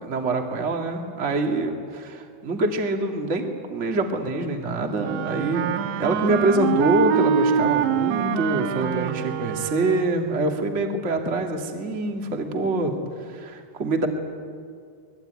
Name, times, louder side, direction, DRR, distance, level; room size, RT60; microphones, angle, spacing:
voice 1, 0.0-12.9 13.2-14.1, right 2 dB, 60° right, 3 dB, 0.7 m, -25 dB
Wind instrument woodwind instrument, 5.0-10.4, right 8 dB, 80° right, 3.0 m, -25 dB
24.5 x 21.5 x 9.4 m, 2.2 s
omnidirectional pair, 5.2 m